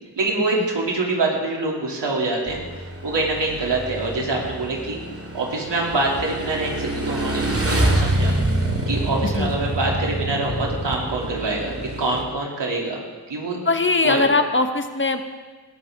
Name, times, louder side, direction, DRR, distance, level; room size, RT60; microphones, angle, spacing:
voice 1, 0.1-2.6 3.0-5.0 5.3-8.3 8.9-13.0 13.3-13.6 14.0-14.3, right 2 dB, 85° right, -2 dB, 3.1 m, -25 dB
Motorcycle / Engine, 2.5-12.2, right 1 dB, 35° right, 2.4 m, -26 dB
voice 2, 13.6-15.3, left 3 dB, 30° left, 7 dB, 1.3 m, -21 dB
20.5 x 13.5 x 3.7 m, 1.3 s
cardioid pair, 55°, 41 cm